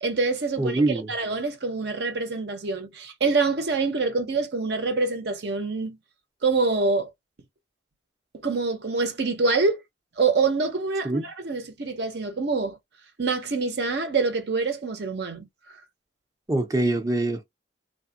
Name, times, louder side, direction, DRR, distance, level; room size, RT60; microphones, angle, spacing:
voice 1, 0.0-0.8 1.1-6.0 6.4-7.1 8.4-9.8 10.2-12.8 13.2-15.5, right 4 dB, 60° right, 0.7 m, -25 dB
voice 2, 0.6-1.1 11.0-11.2 16.5-17.4, right 2 dB, 20° right, 0.5 m, -24 dB
3.3 x 2.1 x 2.7 m
head